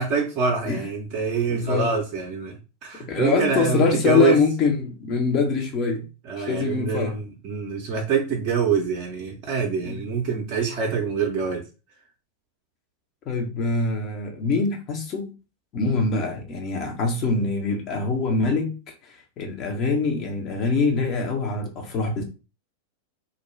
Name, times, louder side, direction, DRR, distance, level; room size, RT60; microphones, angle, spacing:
voice 1, 0.0-4.4 6.3-11.7, right 5 dB, 40° right, 0.6 m, -25 dB
voice 2, 1.5-1.9 3.1-6.1 6.4-7.2 9.8-10.0 13.3-15.3 15.7-18.8 19.0-22.2, left 4 dB, 35° left, 0.7 m, -24 dB
2.5 x 2.1 x 3.1 m
figure-of-eight pair, 90°, 0 cm